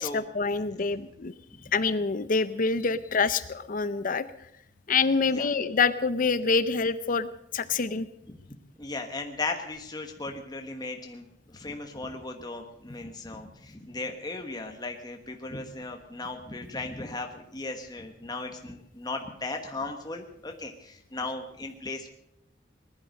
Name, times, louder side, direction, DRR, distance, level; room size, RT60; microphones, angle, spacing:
voice 1, 0.0-1.3 1.7-4.3 4.9-8.1, left 4 dB, 50° left, 13 dB, 0.6 m, -26 dB
voice 2, 8.8-22.1, left 3 dB, 25° left, 4 dB, 1.3 m, -37 dB
20.0 x 11.0 x 6.4 m, 0.81 s
head